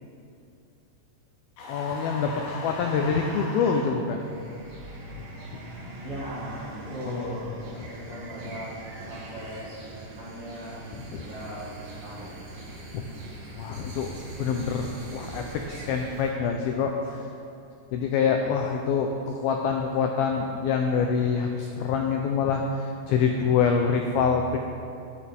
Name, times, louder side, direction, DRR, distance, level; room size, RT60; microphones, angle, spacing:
sound 1, 1.6-3.9, left 2 dB, 70° left, 4.0 m, -37 dB
voice 1, 1.7-4.2 7.1-7.4 10.9-11.2 12.9-13.1 13.5-14.1 14.4-17.3 17.9-24.6, left 6 dB, 90° left, 3 dB, 2.1 m, -26 dB
sound 2, 4.2-16.3, right 1 dB, 70° right, 4.4 m, -41 dB
voice 2, 6.0-8.7 9.1-9.7 10.2-10.8 11.2-11.6 12.0-12.3, equal, 45° right, -8 dB, 2.1 m, -38 dB
15.0 x 13.0 x 3.6 m, 2.5 s
omnidirectional pair, 5.2 m